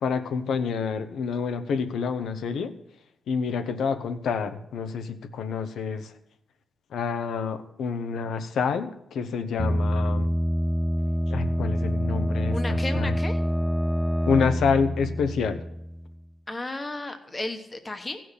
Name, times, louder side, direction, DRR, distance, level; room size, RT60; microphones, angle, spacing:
voice 1, 0.0-2.7 3.3-6.1 6.9-10.3 11.3-13.0 14.3-15.6, left 5 dB, 85° left, 8 dB, 1.0 m, -28 dB
sound 1, 9.6-16.2, equal, 5° right, 0.4 m, -26 dB
voice 2, 12.5-13.4 16.5-18.2, left 2 dB, 15° left, 7 dB, 1.1 m, -33 dB
16.0 x 6.1 x 8.2 m, 0.79 s
wide cardioid pair, 180°, 0 cm